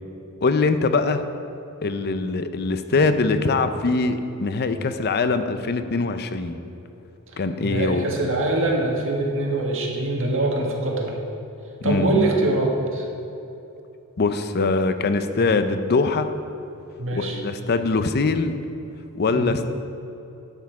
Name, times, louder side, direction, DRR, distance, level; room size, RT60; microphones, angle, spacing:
voice 1, 0.4-1.2 1.8-6.6 7.4-8.1 11.8-12.2 14.2-16.3 17.1-18.6 19.2-19.7, left 3 dB, 45° left, 9 dB, 0.5 m, -22 dB
voice 2, 2.9-3.2 7.6-11.1 11.8-13.1 17.0-17.4 19.3-19.5, right 2 dB, 60° right, -1 dB, 1.8 m, -24 dB
11.5 x 8.2 x 4.7 m, 2.9 s
head